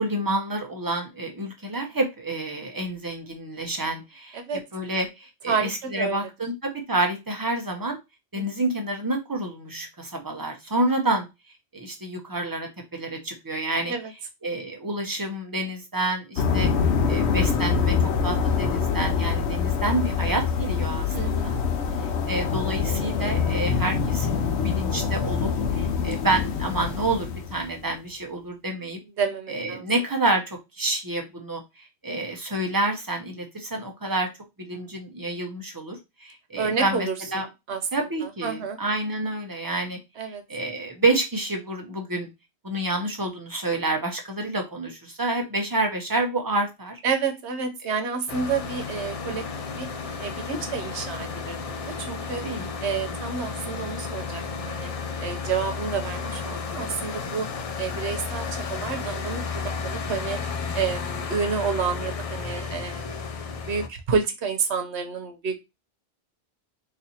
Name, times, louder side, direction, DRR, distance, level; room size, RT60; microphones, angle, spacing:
voice 1, 0.0-4.4 4.7-8.0 8.3-11.3 11.7-13.9 14.4-16.7 17.1-18.0 18.2-21.6 22.3-25.5 25.8-29.0 29.5-31.6 32.0-34.3 34.6-37.5 37.9-40.0 40.5-42.3 42.6-47.0 52.3-52.7, right 2 dB, 20° right, 2 dB, 0.7 m, -28 dB
voice 2, 5.5-6.2 8.3-8.6 13.9-14.1 21.1-21.6 29.2-29.9 36.6-37.8 38.2-38.8 40.2-40.4 47.0-49.4 49.8-49.9 50.2-52.4 52.8-54.9 55.2-57.5 57.8-60.4 60.7-63.3 63.7-65.5, right 5 dB, 85° right, 6 dB, 1.1 m, -29 dB
sound 1, 16.4-27.7, left 6 dB, 85° left, 0.9 m, -25 dB
sound 2, 48.3-63.9, left 5 dB, 50° left, 0.4 m, -33 dB
4.1 x 2.6 x 2.7 m, 0.23 s
omnidirectional pair, 1.1 m